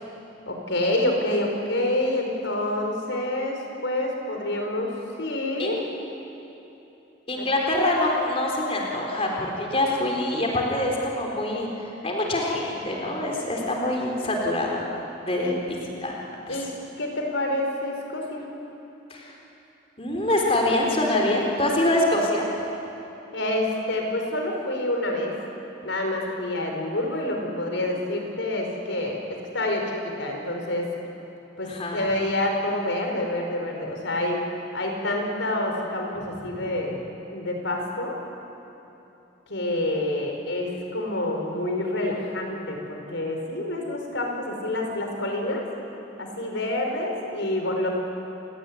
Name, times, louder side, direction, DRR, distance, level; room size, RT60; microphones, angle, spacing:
voice 1, 0.5-4.9 5.2-5.8 7.4-7.5 15.4-15.5 16.5-16.7 17.0-18.4 23.3-25.3 25.8-30.9 31.6-34.4 34.7-37.0 37.3-38.2 39.5-45.7 46.2-47.9, left 1 dB, 70° left, 2 dB, 4.8 m, -27 dB
voice 2, 7.3-11.7 12.0-14.8 15.2-16.2 16.5-16.6 19.1-19.3 20.0-22.5 31.6-32.0 36.4-36.7, left 1 dB, 30° left, -1 dB, 3.9 m, -25 dB
29.5 x 18.5 x 9.8 m, 3.0 s
head